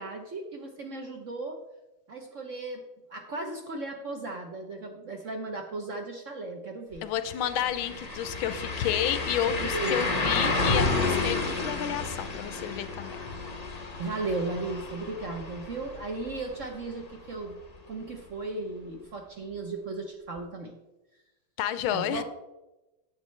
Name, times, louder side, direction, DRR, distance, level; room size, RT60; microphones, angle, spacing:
voice 1, 0.0-1.6 2.1-2.8 3.1-7.0 9.6-10.2 14.0-17.6 17.9-20.8 21.9-22.2, right 2 dB, 55° right, 3 dB, 0.9 m, -36 dB
sound 1, 6.9-7.0 7.3-17.1 17.5-17.6 20.4-20.5, left 3 dB, 40° left, 0.5 m, -31 dB
voice 2, 7.0-13.2 21.6-22.2, left 10 dB, 85° left, 12 dB, 1.5 m, -30 dB
9.5 x 7.9 x 3.2 m, 1.0 s
omnidirectional pair, 2.2 m